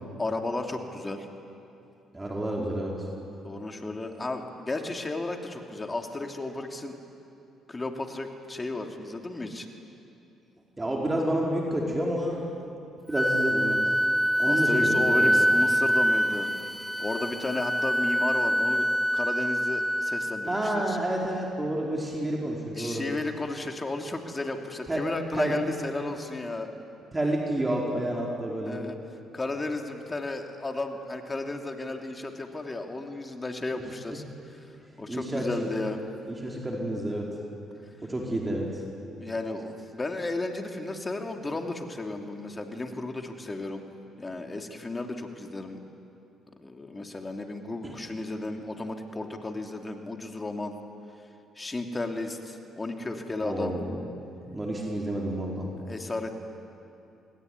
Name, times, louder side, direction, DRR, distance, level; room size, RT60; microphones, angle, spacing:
voice 1, 0.2-1.3 3.4-6.9 7.7-9.7 14.4-16.5 17.0-18.9 19.1-21.0 22.7-26.7 28.6-29.0 29.3-36.0 39.2-43.8 44.2-45.8 46.6-50.8 51.5-53.7 55.9-56.3, left 2 dB, 25° left, 4 dB, 3.0 m, -34 dB
voice 2, 2.1-3.0 10.8-12.4 13.1-13.9 14.4-15.3 20.5-23.0 24.9-25.0 25.3-25.5 27.1-28.8 35.1-35.7 36.3-37.3 38.0-38.8 47.8-47.9 53.4-53.9 54.5-55.7, right 1 dB, 20° right, -2 dB, 5.2 m, -29 dB
Wind instrument woodwind instrument, 13.1-20.9, equal, ahead, 0.6 m, -25 dB
26.5 x 22.0 x 9.7 m, 2.7 s
supercardioid pair, 60°, 0 cm